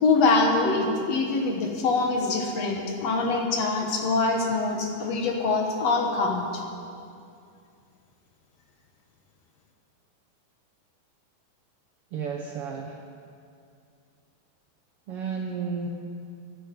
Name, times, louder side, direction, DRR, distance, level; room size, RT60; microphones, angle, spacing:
voice 1, 0.0-6.6, left 3 dB, 60° left, 2 dB, 2.3 m, -24 dB
voice 2, 12.1-13.0 15.1-15.9, right 6 dB, 70° right, 2 dB, 1.4 m, -32 dB
22.0 x 10.5 x 5.3 m, 2.4 s
omnidirectional pair, 3.6 m